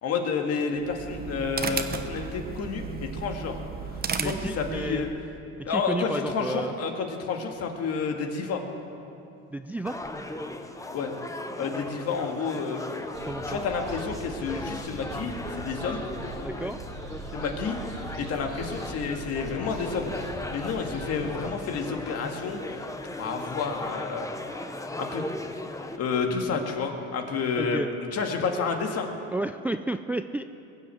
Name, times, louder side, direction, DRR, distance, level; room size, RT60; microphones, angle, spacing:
voice 1, 0.0-3.6 4.2-5.1 5.7-8.6 10.9-11.1 11.6-12.8 13.5-16.0 17.3-20.1 20.5-22.9 23.2-24.3 25.0-25.2 26.0-27.8 28.1-29.1, left 5 dB, 55° left, 3 dB, 2.0 m, -30 dB
sound 1, 0.7-5.2, right 6 dB, 30° right, 1.0 m, -34 dB
voice 2, 4.2-5.1 5.7-6.7 9.5-10.0 13.2-13.6 16.4-16.8 27.6-27.9 29.3-30.4, right 2 dB, 5° right, 9 dB, 0.4 m, -31 dB
sound 2, 9.9-26.0, left 1 dB, 10° left, 1.1 m, -37 dB
sound 3, 13.1-21.3, right 3 dB, 85° right, 3.5 m, -41 dB
21.0 x 7.6 x 7.7 m, 2.7 s
supercardioid pair, 90°, 30 cm